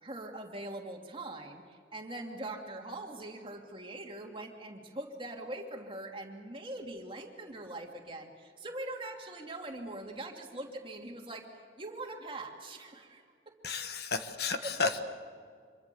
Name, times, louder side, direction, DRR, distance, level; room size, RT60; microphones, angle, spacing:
voice 1, 0.0-11.5 11.8-13.7 14.6-15.0, right 1 dB, 30° right, 2 dB, 2.7 m, -42 dB
voice 2, 13.6-15.0, left 4 dB, 60° left, 8 dB, 1.4 m, -32 dB
26.0 x 23.5 x 7.0 m, 2.1 s
head